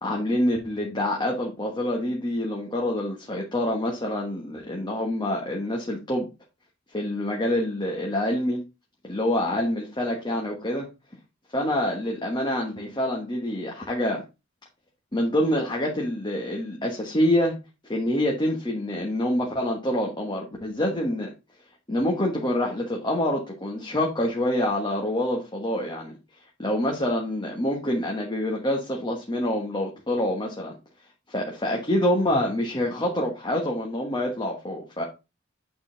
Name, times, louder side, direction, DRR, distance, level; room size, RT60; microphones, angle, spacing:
voice 1, 0.0-6.3 6.9-8.6 9.0-10.9 11.5-14.2 15.1-17.5 17.8-21.3 21.9-26.1 26.6-30.7 31.3-35.0, left 1 dB, 25° left, 1.4 m, -26 dB
8.6 x 4.3 x 4.0 m
head